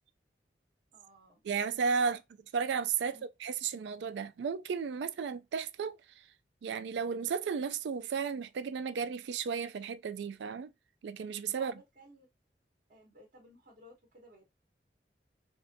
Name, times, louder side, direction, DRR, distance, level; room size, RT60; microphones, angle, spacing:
voice 1, 0.9-1.4 2.0-2.2 3.0-3.2 11.6-12.3 12.9-14.4, right 1 dB, 50° right, 1.1 m, -55 dB
voice 2, 1.4-2.2 2.5-6.0 6.6-10.7 11.0-11.7, right 6 dB, 75° right, 0.3 m, -34 dB
3.5 x 2.6 x 2.6 m
head